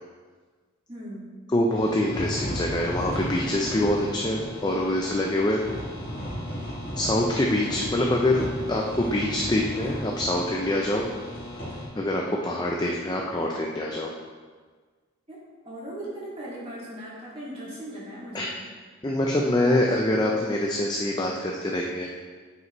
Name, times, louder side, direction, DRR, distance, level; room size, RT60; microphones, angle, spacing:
voice 1, 0.9-1.3 7.5-7.9 15.3-18.7, right 1 dB, 25° right, -7 dB, 2.0 m, -39 dB
voice 2, 1.5-5.6 6.9-8.4 8.7-11.0 11.9-14.1 18.3-18.5 19.0-22.2, left 1 dB, 20° left, -1 dB, 0.4 m, -25 dB
sound 1, 1.7-11.9, equal, 45° left, 2.2 m, -35 dB
9.2 x 5.3 x 3.0 m, 1.5 s
head